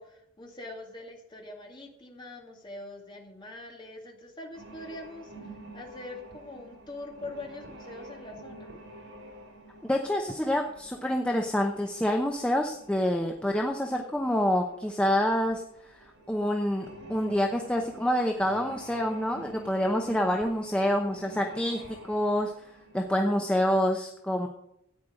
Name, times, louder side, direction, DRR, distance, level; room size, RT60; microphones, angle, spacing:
voice 1, 0.0-8.7, left 2 dB, 20° left, 0 dB, 2.2 m, -43 dB
sound 1, 4.5-23.1, right 1 dB, 70° right, 4.9 m, -49 dB
voice 2, 9.8-15.6 16.3-22.5 22.9-24.5, equal, 5° left, 2 dB, 0.8 m, -27 dB
13.5 x 9.3 x 5.1 m, 0.79 s
head